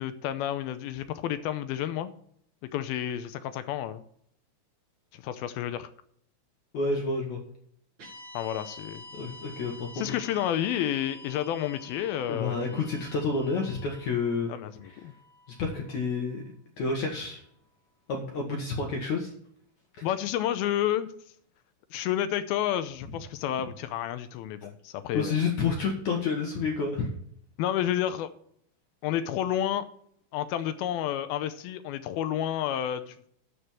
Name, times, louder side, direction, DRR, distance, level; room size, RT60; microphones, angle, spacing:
voice 1, 0.0-2.1 2.7-4.0 5.1-5.9 8.3-9.0 10.0-12.9 14.5-15.1 20.0-21.1 21.9-25.4 27.6-28.3 29.0-29.9 30.3-33.3, left 11 dB, 80° left, 11 dB, 2.3 m, -30 dB
voice 2, 6.7-7.4 9.1-10.1 12.3-14.5 14.8-15.0 15.6-16.4 16.8-17.4 18.1-19.3 20.0-20.1 25.1-27.1, left 4 dB, 60° left, 1 dB, 2.3 m, -29 dB
sound 1, 8.0-16.3, left 2 dB, 35° right, 3.7 m, -48 dB
12.5 x 5.1 x 7.3 m, 0.65 s
omnidirectional pair, 4.8 m